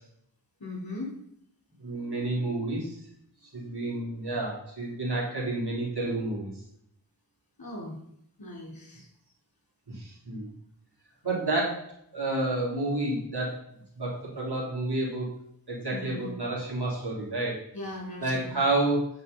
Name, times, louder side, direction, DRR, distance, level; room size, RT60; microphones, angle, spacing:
voice 1, 0.6-1.1 7.6-8.0 8.4-9.1 15.9-16.3 17.7-18.6, left 2 dB, 55° left, -3 dB, 4.1 m, -38 dB
voice 2, 1.8-2.9 3.5-6.5 9.9-10.5 11.2-13.6 14.0-15.3 15.7-17.6 18.2-19.1, right 2 dB, 65° right, -5 dB, 3.6 m, -30 dB
9.0 x 5.5 x 5.5 m, 0.72 s
wide cardioid pair, 45°, 42 cm